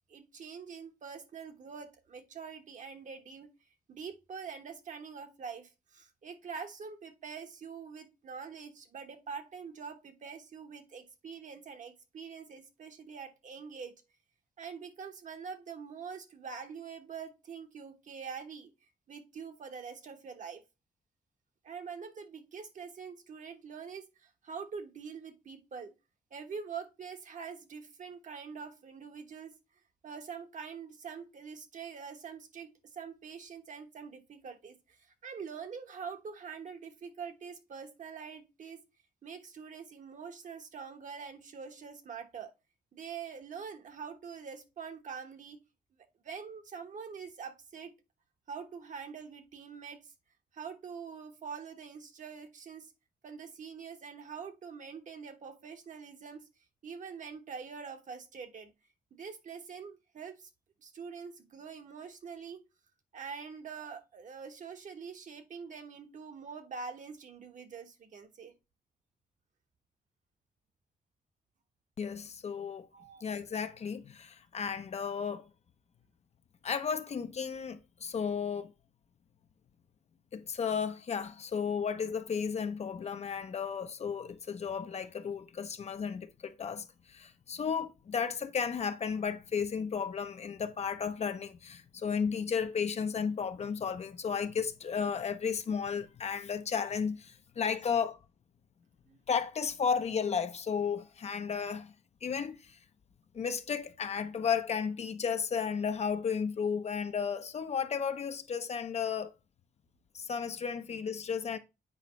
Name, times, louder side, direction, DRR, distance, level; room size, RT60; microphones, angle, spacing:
voice 1, 0.1-3.5 3.9-13.9 14.6-18.7 19.1-20.6 21.6-25.9 26.3-29.5 30.0-38.8 39.2-42.5 42.9-45.6 46.2-47.9 48.5-50.1 50.5-52.9 53.2-56.5 56.8-58.7 59.1-60.5 60.8-62.6 63.1-68.5 72.9-73.2 99.1-99.2, right 6 dB, 50° right, 1.2 m, -45 dB
voice 2, 72.0-72.9 73.2-75.5 76.6-78.7 80.3-98.2 99.3-101.9 102.2-102.8 103.3-109.3 110.1-111.6, left 6 dB, 45° left, 0.6 m, -34 dB
8.4 x 4.9 x 3.1 m
wide cardioid pair, 150°, 16 cm